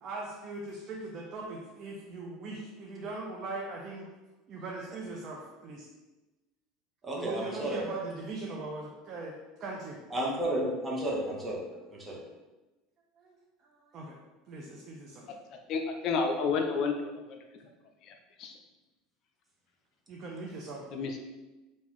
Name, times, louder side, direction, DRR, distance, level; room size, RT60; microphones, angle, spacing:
voice 1, 0.0-4.1 4.5-5.9 7.1-9.3 9.6-10.0 13.2-14.2 14.5-15.3 20.1-20.9, right 3 dB, 45° right, -2 dB, 0.6 m, -40 dB
voice 2, 7.0-7.8 10.1-11.6 11.9-12.2, right 1 dB, 20° right, -3 dB, 1.0 m, -32 dB
voice 3, 15.7-17.4 18.1-18.2 18.4-18.5 20.9-21.2, left 5 dB, 55° left, 4 dB, 0.5 m, -30 dB
3.8 x 2.5 x 3.0 m, 1.1 s
supercardioid pair, 110°, 0 cm